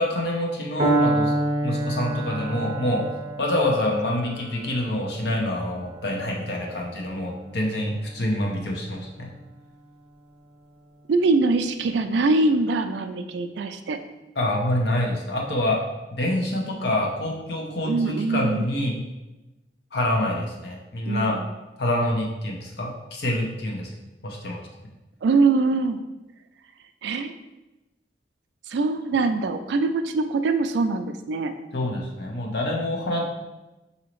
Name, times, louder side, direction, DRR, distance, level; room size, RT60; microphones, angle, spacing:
voice 1, 0.0-1.3 1.6-3.1 3.4-9.3 14.4-15.8 16.1-19.0 19.9-21.4 21.8-23.9 24.2-24.6 31.7-33.3, left 1 dB, 65° left, -1 dB, 0.7 m, -26 dB
Piano, 0.8-8.7, right 1 dB, 30° right, 0.7 m, -28 dB
voice 2, 11.1-14.0 17.8-18.7 21.1-21.5 25.2-26.0 27.0-27.3 28.7-31.5, right 3 dB, 70° right, 8 dB, 0.3 m, -23 dB
5.0 x 2.7 x 3.0 m, 1.0 s
head